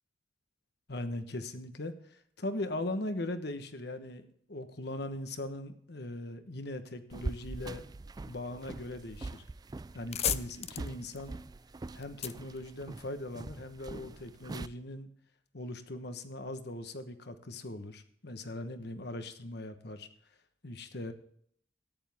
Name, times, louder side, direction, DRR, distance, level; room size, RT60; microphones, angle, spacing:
voice 1, 0.9-7.8 8.3-9.4 9.9-11.4 11.9-15.1 15.5-20.1 20.6-21.1, left 1 dB, 60° left, 9 dB, 1.2 m, -40 dB
sound 1, 7.1-14.7, right 2 dB, 20° right, 0.3 m, -43 dB
sound 2, 9.9-13.4, left 10 dB, 35° left, 0.5 m, -37 dB
14.0 x 10.0 x 3.6 m, 0.64 s
head